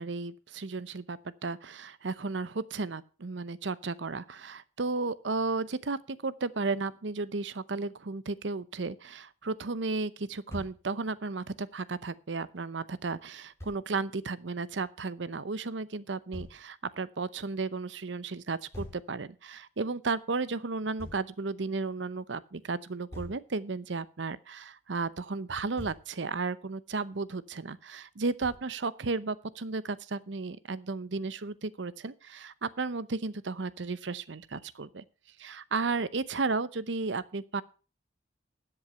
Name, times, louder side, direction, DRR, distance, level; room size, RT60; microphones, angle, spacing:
voice 1, 0.0-35.0 35.4-37.6, right 3 dB, 70° right, 0.8 m, -34 dB
Thump thud, 10.5-10.8 13.6-13.8 16.3-16.6 18.7-19.1 21.0-21.3 23.1-23.4 25.5-26.1 28.4-28.7, left 1 dB, 15° left, 5.3 m, -43 dB
12.5 x 8.0 x 5.6 m
head